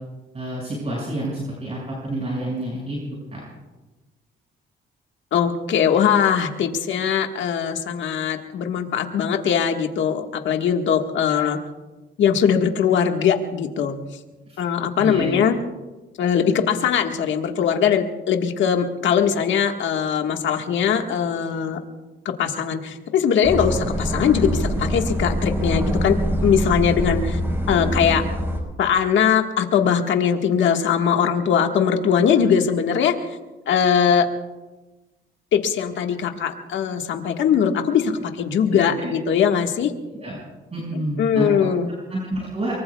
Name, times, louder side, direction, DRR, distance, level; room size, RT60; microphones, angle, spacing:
voice 1, 0.3-3.0 3.3-3.4 11.3-11.4 14.5-14.6 15.0-15.5 27.0-27.1 38.7-39.1 40.1-40.4 40.7-41.7 42.1-42.7, right 1 dB, 30° right, -4 dB, 5.8 m, -29 dB
voice 2, 5.3-11.6 12.2-14.0 14.6-15.6 16.2-21.8 22.2-26.2 26.4-27.4 27.7-28.2 28.8-33.2 33.7-34.2 35.5-38.1 38.4-39.9 40.9-41.9, left 7 dB, 70° left, 4 dB, 1.6 m, -21 dB
sound 1, 23.4-28.6, equal, 10° right, 4.6 m, -24 dB
23.5 x 23.5 x 2.3 m, 1.1 s
cardioid pair, 90°, 20 cm